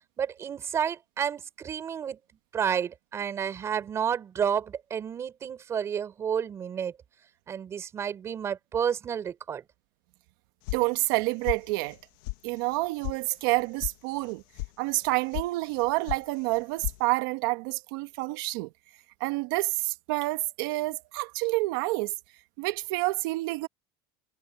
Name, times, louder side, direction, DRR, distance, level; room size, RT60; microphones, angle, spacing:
voice 1, 0.2-2.2 2.5-6.9 7.5-9.6, right 8 dB, 20° right, 4.2 m, -30 dB
sound 1, 10.7-11.2 11.5-12.0 12.2-12.4 12.7-13.2 13.4-13.9 14.2-14.7 15.0-15.5 15.7-16.2 16.5-17.0, left 21 dB, 70° left, 1.6 m, -34 dB
voice 2, 10.7-12.0 12.4-14.4 14.8-18.7 19.2-22.1 22.6-23.7, right 22 dB, 65° right, 1.7 m, -28 dB
supercardioid pair, 165°, 12 cm